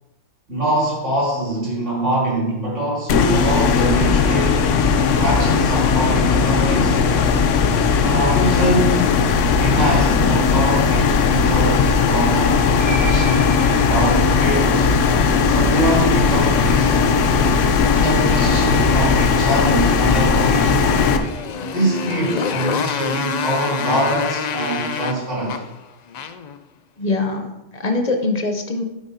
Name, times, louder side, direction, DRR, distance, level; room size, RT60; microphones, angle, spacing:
voice 1, 0.5-4.6 5.2-7.0 7.9-9.1 9.6-13.5 13.8-14.9 15.4-17.1 17.9-21.2 21.7-25.6, right 1 dB, 80° right, -7 dB, 3.7 m, -23 dB
sound 1, 3.1-21.2, left 5 dB, 85° left, 1.0 m, -17 dB
sound 2, 12.8-24.9, right 3 dB, 25° right, 0.8 m, -33 dB
Motorcycle, 20.3-26.6, left 7 dB, 65° left, 0.4 m, -27 dB
voice 2, 27.0-28.8, left 3 dB, 40° left, 5 dB, 0.9 m, -23 dB
8.8 x 8.1 x 2.8 m, 1.0 s
omnidirectional pair, 1.2 m